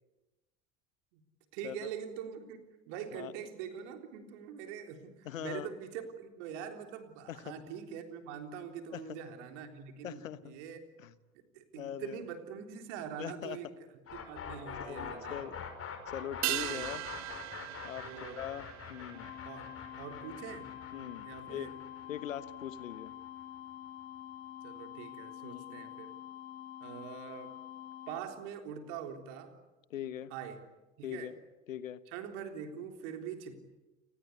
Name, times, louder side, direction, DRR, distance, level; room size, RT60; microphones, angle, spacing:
voice 1, 1.5-10.8 11.5-13.7 14.1-15.4 16.7-16.9 18.0-18.4 19.5-19.7 20.0-20.7 21.2-21.7 24.6-26.1 26.8-27.6 28.1-29.6 30.3-30.6 31.0-31.3 32.1-33.6, right 8 dB, 60° right, 6 dB, 3.7 m, -43 dB
voice 2, 5.2-5.7 7.3-7.6 8.9-9.0 10.0-10.5 11.0-11.1 11.7-12.2 13.2-13.6 14.8-15.5 16.1-17.0 17.8-18.1 18.4-19.3 20.9-21.7 22.1-23.1 25.4-25.8 29.9-30.3 31.0-31.3 31.7-32.0, left 10 dB, 75° left, 15 dB, 1.3 m, -41 dB
sound 1, 14.1-23.9, left 6 dB, 35° left, 5.8 m, -45 dB
sound 2, 16.4-21.1 21.4-21.5, right 16 dB, 45° right, 1.2 m, -40 dB
sound 3, 19.1-28.2, left 12 dB, 60° left, 2.7 m, -47 dB
29.5 x 19.5 x 9.8 m, 1.1 s
figure-of-eight pair, 65°, 39 cm